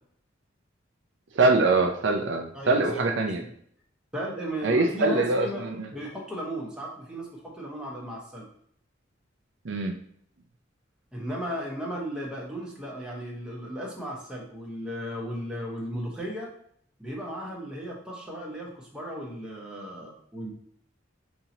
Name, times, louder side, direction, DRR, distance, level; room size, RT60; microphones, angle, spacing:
voice 1, 1.3-3.4 4.6-5.9 9.6-9.9, right 3 dB, 65° right, 4 dB, 0.5 m, -23 dB
voice 2, 2.5-3.0 3.4-3.5 4.1-8.4 11.1-16.5 17.0-20.5, equal, 5° right, -4 dB, 1.0 m, -35 dB
5.3 x 2.8 x 2.7 m, 0.64 s
head